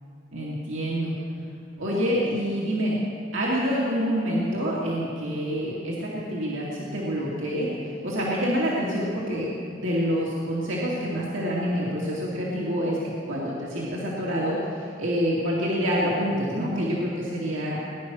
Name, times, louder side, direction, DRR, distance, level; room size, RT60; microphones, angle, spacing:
voice 1, 0.3-1.1 1.8-3.0 3.3-17.8, equal, 75° right, -5 dB, 2.5 m, -27 dB
20.0 x 10.5 x 6.3 m, 2.5 s
head